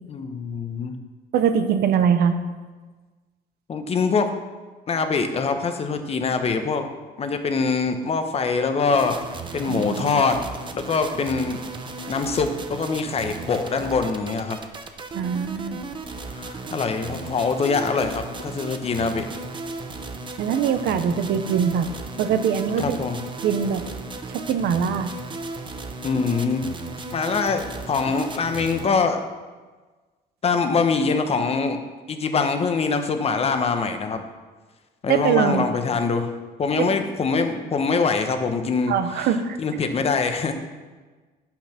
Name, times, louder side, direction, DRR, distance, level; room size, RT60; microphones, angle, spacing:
voice 1, 0.1-1.0 3.7-4.3 4.9-6.9 7.2-9.2 9.5-10.4 10.7-11.6 12.1-14.6 16.3-19.3 22.8-23.2 26.0-26.7 27.1-29.2 30.4-31.8 32.1-34.2 35.0-36.3 36.6-39.3 39.6-40.5, left 4 dB, 35° left, 7 dB, 1.0 m, -24 dB
voice 2, 1.3-2.4 9.7-10.2 15.1-15.8 20.4-21.9 22.2-23.0 23.4-23.8 24.3-25.1 35.1-35.7 36.8-36.9 38.9-39.6, right 7 dB, 70° right, 9 dB, 0.9 m, -22 dB
sound 1, 8.9-28.9, right 3 dB, 30° right, 0.8 m, -35 dB
8.8 x 5.9 x 5.9 m, 1.3 s
cardioid pair, 110°, 17 cm